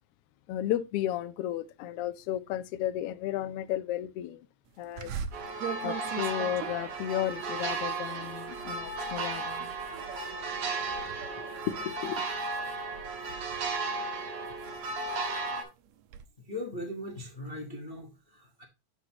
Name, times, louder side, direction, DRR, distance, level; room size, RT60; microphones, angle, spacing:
voice 1, 0.5-4.5 4.8-5.1 5.8-9.7 11.8-12.2, left 12 dB, 90° left, 1.3 m, -33 dB
sound 1, 5.0-10.3 10.7-11.1 11.5-13.5 14.1-16.3, right 8 dB, 75° right, 1.9 m, -42 dB
sound 2, 5.3-15.6, right 3 dB, 55° right, 2.1 m, -35 dB
voice 2, 16.5-18.6, left 1 dB, 50° left, 0.6 m, -39 dB
9.3 x 6.1 x 2.9 m
omnidirectional pair, 3.4 m